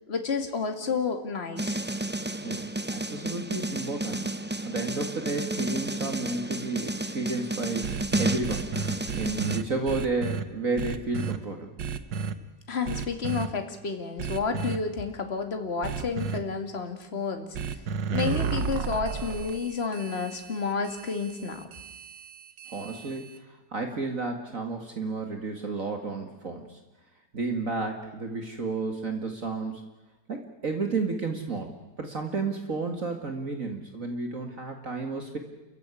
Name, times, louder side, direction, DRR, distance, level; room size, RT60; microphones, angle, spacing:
voice 1, 0.1-1.8 12.7-17.5 18.1-21.7, left 5 dB, 35° left, 6 dB, 2.4 m, -30 dB
sound 1, 1.6-9.6, right 1 dB, 15° right, 0.3 m, -31 dB
voice 2, 2.4-4.3 4.6-7.9 8.2-8.7 9.2-11.7 22.7-26.8 27.3-29.8 30.3-31.7 32.0-35.4, right 3 dB, 50° right, 4 dB, 2.5 m, -32 dB
sound 2, 7.8-10.4 10.8-11.4 11.8-12.3 12.9-13.5 14.2-14.8 15.8-16.4 17.5-23.4, right 6 dB, 80° right, 1.8 m, -33 dB
29.0 x 15.0 x 9.9 m, 1.1 s
omnidirectional pair, 1.9 m